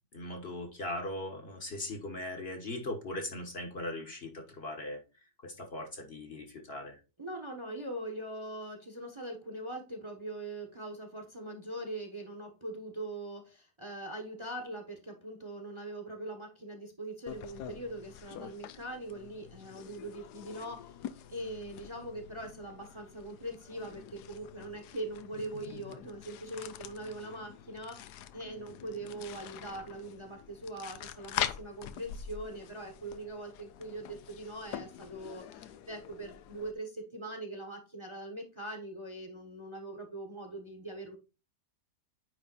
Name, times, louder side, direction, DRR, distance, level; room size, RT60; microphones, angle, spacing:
voice 1, 0.1-5.0 5.4-7.0, left 1 dB, 40° left, 4 dB, 1.4 m, -39 dB
voice 2, 7.2-21.0 21.3-41.2, right 1 dB, 20° right, 4 dB, 1.1 m, -42 dB
sound 1, 17.3-36.7, left 10 dB, 90° left, 1.2 m, -44 dB
9.5 x 3.5 x 4.0 m, 0.30 s
omnidirectional pair, 1.7 m